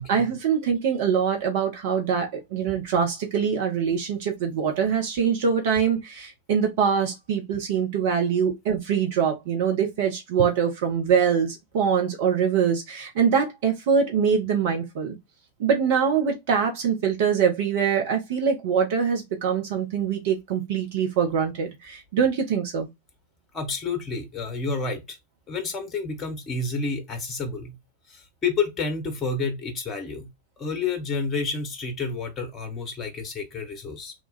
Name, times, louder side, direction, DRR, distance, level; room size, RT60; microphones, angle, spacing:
voice 1, 0.0-15.1 15.6-22.9, right 7 dB, 50° right, 0.8 m, -24 dB
voice 2, 23.5-25.2 25.5-27.8 28.1-30.3 30.6-34.1, left 4 dB, 20° left, 0.9 m, -29 dB
3.1 x 2.3 x 4.0 m
figure-of-eight pair, 90°, 0 cm